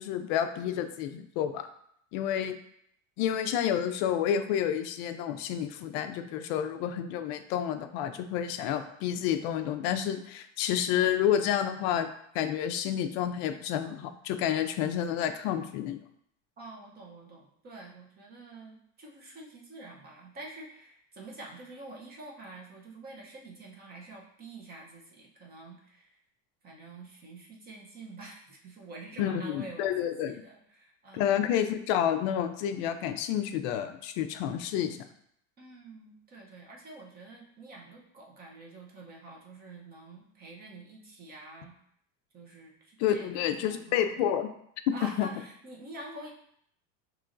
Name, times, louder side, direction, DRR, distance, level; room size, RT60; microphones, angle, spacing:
voice 1, 0.0-1.7 2.1-2.6 3.2-12.1 12.3-16.0 29.2-30.4 31.1-35.0 43.0-44.5 45.2-45.3, left 10 dB, 50° left, 8 dB, 0.4 m, -29 dB
voice 2, 16.6-26.1 26.6-31.2 35.6-41.7 42.3-44.3 44.9-46.3, right 2 dB, 25° right, -1 dB, 0.7 m, -47 dB
5.6 x 3.1 x 2.5 m, 0.69 s
cardioid pair, 165°, 40 cm